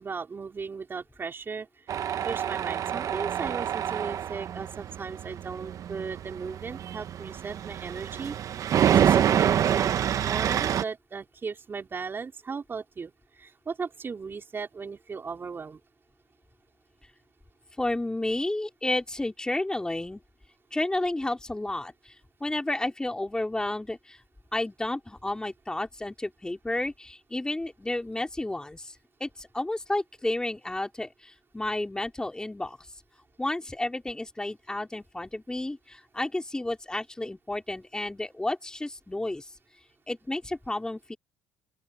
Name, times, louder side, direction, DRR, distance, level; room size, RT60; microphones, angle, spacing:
voice 1, 0.0-1.7 2.2-8.4 8.9-15.8, right 5 dB, 35° right, 4.9 m, -36 dB
Tools, 1.9-10.8, right 9 dB, 55° right, 1.2 m, -27 dB
voice 2, 17.8-20.2 20.7-22.1 22.4-24.2 24.5-28.9 29.2-32.8 33.4-39.5 40.1-41.2, left 2 dB, 10° left, 4.4 m, -31 dB
open air
supercardioid pair, 80°, 7 cm